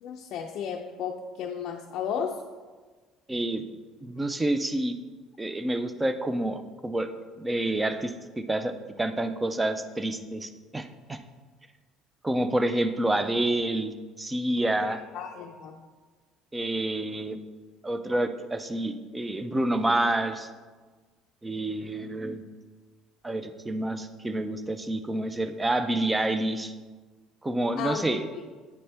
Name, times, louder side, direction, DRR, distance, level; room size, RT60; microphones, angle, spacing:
voice 1, 0.0-2.4 14.8-15.8 27.8-28.2, left 7 dB, 55° left, 1 dB, 0.4 m, -34 dB
voice 2, 3.3-3.7 4.0-5.0 5.4-7.1 7.4-8.1 8.5-11.2 12.2-15.0 16.5-17.4 17.8-20.5 21.4-22.4 23.2-26.7 27.4-28.3, right 1 dB, 10° right, 9 dB, 0.4 m, -28 dB
9.3 x 4.2 x 3.4 m, 1.4 s
cardioid pair, 155°, 0 cm